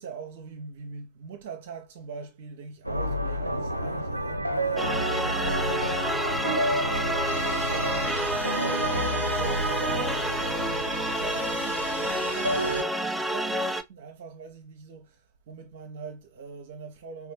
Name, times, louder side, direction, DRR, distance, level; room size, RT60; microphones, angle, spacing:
voice 1, 0.0-15.2 15.5-17.3, right 5 dB, 55° right, 0.9 m, -42 dB
sound 1, 2.8-12.8, equal, 85° right, 0.6 m, -30 dB
sound 2, 4.8-13.8, right 1 dB, 5° right, 0.5 m, -29 dB
4.4 x 3.6 x 3.0 m
figure-of-eight pair, 90°, 0 cm